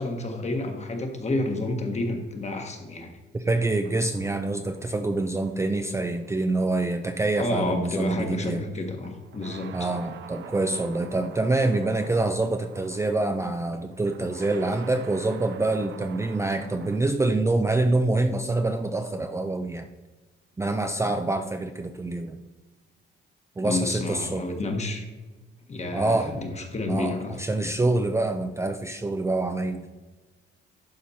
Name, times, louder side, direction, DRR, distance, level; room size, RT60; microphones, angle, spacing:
voice 1, 0.0-3.1 7.4-9.9 23.6-25.0 25.7-27.4 27.8-27.9, left 2 dB, 35° left, 4 dB, 1.4 m, -30 dB
voice 2, 3.3-8.6 9.7-19.9 20.6-22.4 23.6-24.4 25.9-26.3 26.9-29.9, right 2 dB, 15° right, 6 dB, 0.5 m, -26 dB
sound 1, 3.8-17.0, right 7 dB, 65° right, 0.7 m, -47 dB
11.5 x 4.3 x 4.2 m, 1.2 s
cardioid pair, 90°, 20 cm